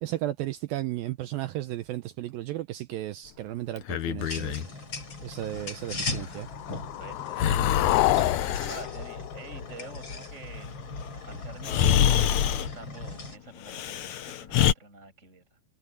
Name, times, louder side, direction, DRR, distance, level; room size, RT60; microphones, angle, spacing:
voice 1, 0.0-4.6 5.2-6.5, right 15 dB, 80° right, 2.2 m, -34 dB
Breathing, 3.8-4.7 7.4-8.8 11.0-11.1 11.6-12.7 13.6-14.7, left 10 dB, 65° left, 1.9 m, -26 dB
sound 1, 4.2-13.4, left 2 dB, 30° left, 5.2 m, -38 dB
sound 2, 6.3-10.3, left 21 dB, 85° left, 2.7 m, -29 dB
voice 2, 6.9-7.5 8.0-10.7 11.2-15.4, right 3 dB, 15° right, 6.9 m, -47 dB
omnidirectional pair, 4.8 m